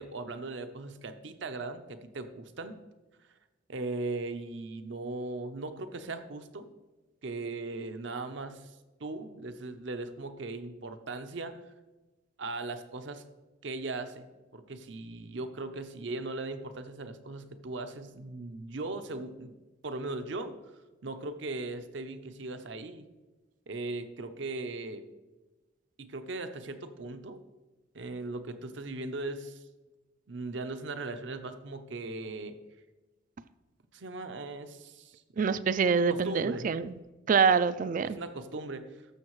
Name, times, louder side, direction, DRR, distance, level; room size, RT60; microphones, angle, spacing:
voice 1, 0.0-2.8 3.7-6.7 7.2-11.5 12.4-13.2 13.6-14.3 14.5-19.5 19.8-20.6 21.0-23.1 23.7-25.0 26.0-27.4 27.9-29.6 30.3-32.6 33.9-35.6 36.1-36.7 38.0-38.9, right 2 dB, 65° right, 8 dB, 0.7 m, -38 dB
voice 2, 35.4-36.9 37.3-38.2, right 5 dB, 40° right, 15 dB, 0.3 m, -25 dB
13.5 x 6.5 x 3.1 m, 1.2 s
head